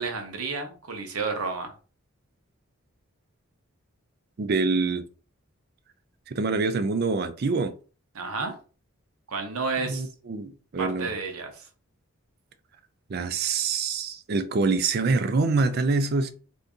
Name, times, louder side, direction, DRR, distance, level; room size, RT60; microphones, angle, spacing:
voice 1, 0.0-1.7 8.1-8.6 9.3-10.1 10.8-11.7, right 4 dB, 85° right, 0.8 m, -31 dB
voice 2, 4.4-5.0 6.3-7.7 9.8-11.1 13.1-16.3, right 4 dB, 45° right, 0.4 m, -25 dB
2.6 x 2.6 x 3.5 m
head